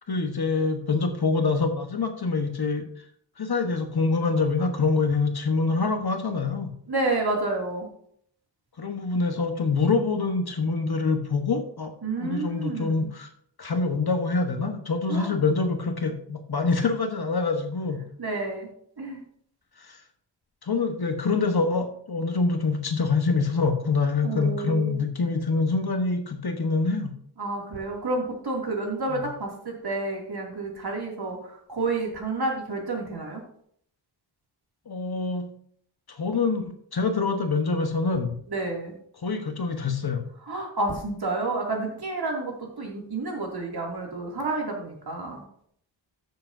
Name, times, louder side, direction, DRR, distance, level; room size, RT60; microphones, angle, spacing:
voice 1, 0.1-2.9 3.4-6.7 8.8-11.9 12.2-13.3 13.6-18.0 19.8-20.0 20.6-27.1 29.1-29.3 34.9-35.5 36.1-38.4 39.2-40.2, left 4 dB, 55° left, 6 dB, 1.2 m, -25 dB
voice 2, 6.9-7.9 12.0-13.1 15.1-15.3 18.2-18.7 19.0-19.2 24.2-25.0 27.4-33.4 38.5-38.9 40.5-45.4, right 2 dB, 55° right, 0 dB, 2.6 m, -30 dB
14.0 x 7.0 x 2.7 m, 0.65 s
wide cardioid pair, 95°, 46 cm